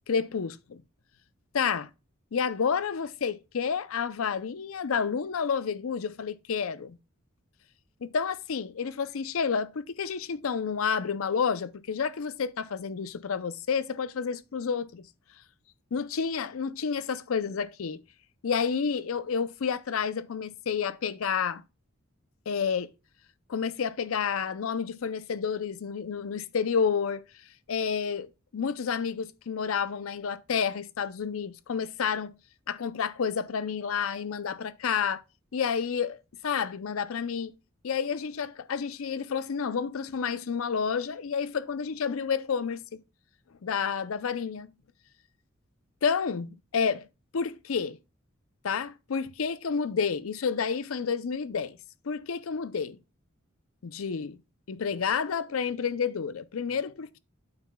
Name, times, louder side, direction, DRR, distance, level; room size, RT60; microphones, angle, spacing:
voice 1, 0.1-0.8 1.5-1.9 2.3-7.0 8.0-15.1 15.9-18.0 18.4-21.6 22.5-22.9 23.5-27.2 27.7-32.3 32.7-35.2 35.5-36.2 36.4-37.5 37.8-43.0 43.6-44.7 46.0-47.1 47.3-48.0 48.6-51.8 52.0-53.0 53.8-54.4 54.7-57.2, left 6 dB, 80° left, 0.5 m, -30 dB
8.8 x 7.2 x 2.2 m
head